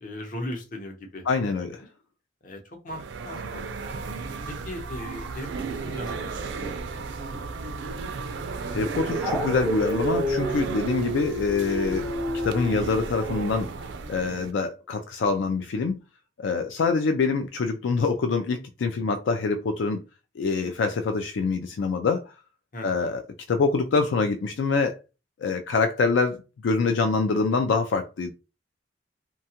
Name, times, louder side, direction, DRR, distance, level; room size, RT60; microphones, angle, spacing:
voice 1, 0.0-1.7 2.4-4.1 4.5-7.7 10.9-11.2 22.7-23.1, left 1 dB, 45° left, 0.7 m, -39 dB
voice 2, 1.3-1.8 8.7-12.1 12.4-13.7 14.1-16.0 16.4-20.0 20.4-22.3 22.8-23.2 23.5-25.0 25.4-26.4 26.6-28.3, left 4 dB, 80° left, 0.3 m, -25 dB
sound 1, 2.9-14.5, right 4 dB, 80° right, 0.4 m, -34 dB
Dog, 9.2-12.9, equal, 5° right, 0.4 m, -30 dB
2.8 x 2.2 x 2.8 m
head